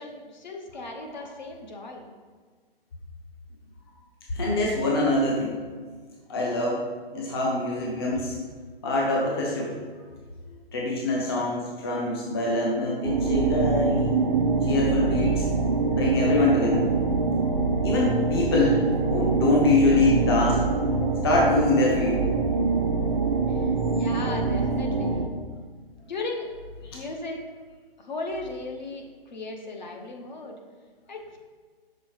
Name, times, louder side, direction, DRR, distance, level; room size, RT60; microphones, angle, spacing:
voice 1, 0.0-2.0 23.5-25.2 26.1-26.5 26.9-27.4 28.0-30.5 31.1-31.4, left 2 dB, 50° left, 2 dB, 0.9 m, -36 dB
voice 2, 4.3-5.6 6.3-6.8 7.1-8.4 8.8-9.7 10.7-14.1 14.6-15.5 15.9-16.8 17.8-20.6 21.2-22.2, left 2 dB, 25° left, -3 dB, 0.7 m, -24 dB
sound 1, 13.0-25.2, right 4 dB, 35° right, 0.5 m, -24 dB
6.1 x 3.6 x 4.7 m, 1.5 s
hypercardioid pair, 160°, 30 cm